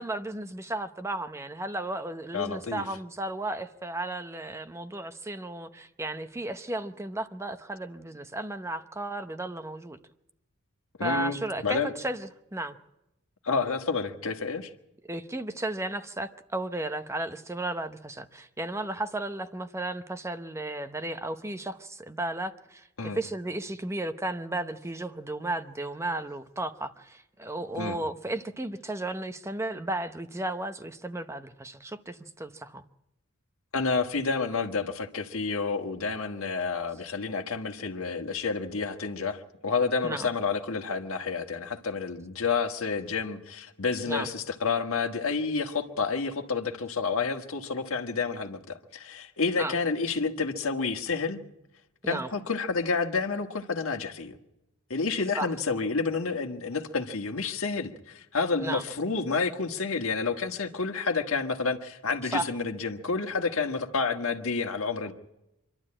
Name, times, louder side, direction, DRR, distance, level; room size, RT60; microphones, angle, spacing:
voice 1, 0.0-10.0 11.0-12.8 15.0-32.8 40.0-40.3 44.1-44.3 49.6-49.7 52.0-52.3 55.3-55.5 58.6-58.8 62.2-62.5, right 2 dB, 15° right, 0.7 m, -34 dB
voice 2, 2.3-2.8 11.0-11.9 13.4-14.7 23.0-23.2 27.7-28.0 33.7-51.4 52.1-54.4 54.9-65.1, left 4 dB, 65° left, 1.6 m, -29 dB
25.5 x 12.0 x 8.7 m
head